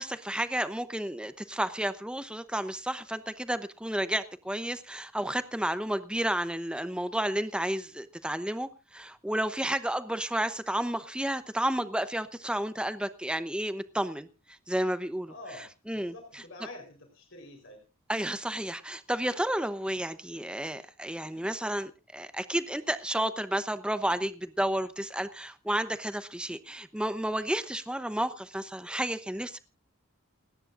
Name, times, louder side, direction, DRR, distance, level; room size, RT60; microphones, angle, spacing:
voice 1, 0.0-15.3 15.9-16.1 18.1-29.6, right 1 dB, 5° right, 0.8 m, -31 dB
voice 2, 15.3-17.8, left 2 dB, 60° left, 4.1 m, -47 dB
29.5 x 9.9 x 2.5 m
head